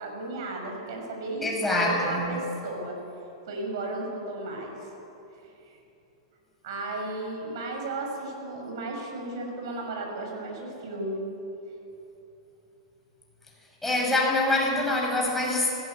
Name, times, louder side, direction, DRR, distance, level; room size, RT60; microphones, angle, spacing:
voice 1, 0.0-3.0 3.5-4.9 5.7-5.8 6.6-11.3, right 2 dB, 65° right, 1 dB, 6.3 m, -34 dB
voice 2, 1.4-2.3 13.8-15.7, left 2 dB, 5° left, -2 dB, 6.2 m, -25 dB
17.5 x 16.0 x 9.4 m, 2.9 s
hypercardioid pair, 110°, 3 cm